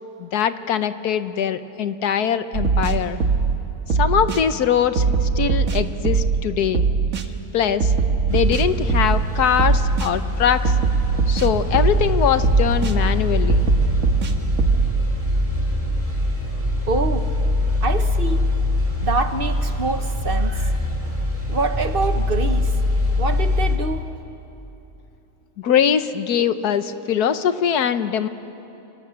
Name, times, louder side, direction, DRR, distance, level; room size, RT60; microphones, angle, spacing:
voice 1, 0.2-3.2 3.9-6.8 7.5-7.9 8.3-10.7 11.3-13.7 25.6-28.3, left 8 dB, 85° left, 11 dB, 1.5 m, -22 dB
sound 1, 2.5-3.6 3.9-4.4 5.0-6.4 6.7-7.3 7.8-9.3 9.6-10.1 10.7-12.1 12.4-12.9 13.5-14.9, right 5 dB, 65° right, 1.8 m, -20 dB
sound 2, 8.3-23.8, left 1 dB, 20° right, 3.3 m, -23 dB
voice 2, 16.9-17.3 17.8-18.5 19.0-21.2 21.5-22.8 23.2-24.1, right 3 dB, 45° right, 8 dB, 1.0 m, -26 dB
30.0 x 25.5 x 7.6 m, 3.0 s
omnidirectional pair, 1.6 m